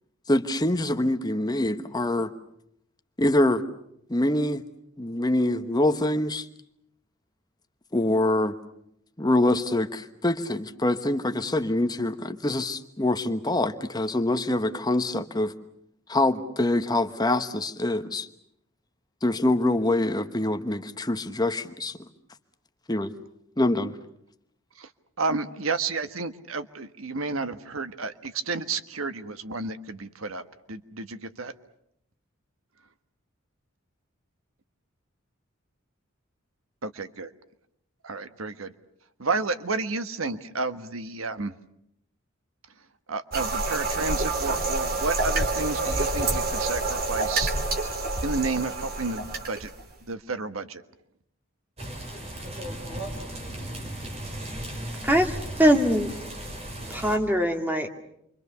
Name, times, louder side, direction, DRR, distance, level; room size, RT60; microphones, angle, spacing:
voice 1, 0.3-2.3 3.2-3.6 4.1-4.6 5.0-6.5 7.9-8.6 9.2-15.5 16.1-18.3 19.2-22.0 22.9-23.1 23.6-24.0, left 1 dB, 20° left, 8 dB, 1.1 m, -25 dB
voice 2, 25.2-30.4 30.7-31.5 36.8-37.3 38.0-38.7 39.2-41.5 43.1-47.5 48.2-49.7 50.1-50.8, right 3 dB, 90° right, 10 dB, 1.4 m, -31 dB
sound 1, 43.3-49.9, right 2 dB, 45° right, 3.3 m, -27 dB
sound 2, 51.8-57.2, right 1 dB, 30° right, 4.9 m, -36 dB
voice 3, 55.0-56.1 56.9-57.9, equal, 10° right, 4 dB, 2.2 m, -22 dB
28.5 x 24.5 x 7.0 m, 0.75 s
head